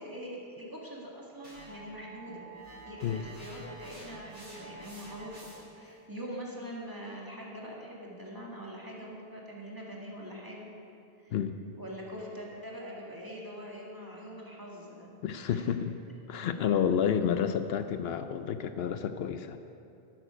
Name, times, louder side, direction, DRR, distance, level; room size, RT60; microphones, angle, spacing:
voice 1, 0.0-2.5 2.9-10.7 11.2-11.4 11.7-15.1 15.5-15.6, equal, 20° right, -4 dB, 2.1 m, -43 dB
sound 1, 1.4-5.8, right 2 dB, 50° right, 3.2 m, -49 dB
voice 2, 15.2-16.0 16.3-19.6, left 8 dB, 75° left, 9 dB, 0.8 m, -30 dB
12.0 x 11.0 x 5.1 m, 2.6 s
omnidirectional pair, 1.0 m